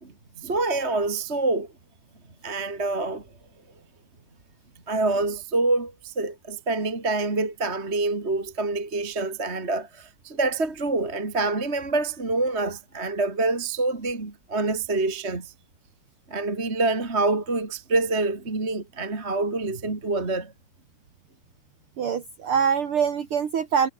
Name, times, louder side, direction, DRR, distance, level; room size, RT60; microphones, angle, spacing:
voice 1, 0.0-1.7 2.4-3.3 4.9-15.5 16.3-20.5, right 3 dB, 20° right, 2.2 m, -26 dB
voice 2, 22.0-23.9, right 7 dB, 50° right, 1.8 m, -24 dB
omnidirectional pair, 5.1 m